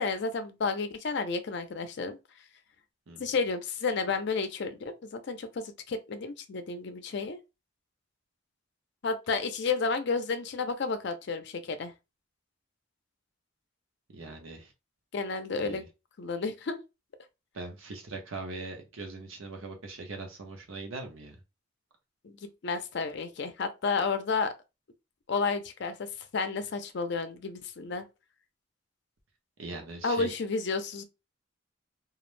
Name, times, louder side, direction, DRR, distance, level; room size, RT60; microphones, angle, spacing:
voice 1, 0.0-2.2 3.2-7.4 9.0-11.9 15.1-15.8 16.2-16.8 22.2-22.3 22.6-24.5 25.3-26.1 26.3-28.0 30.0-31.0, left 4 dB, 60° left, 0.4 m, -31 dB
voice 2, 14.1-14.7 15.6-15.9 17.5-21.4 29.6-30.4, right 3 dB, 90° right, 0.8 m, -41 dB
2.4 x 2.0 x 3.0 m
head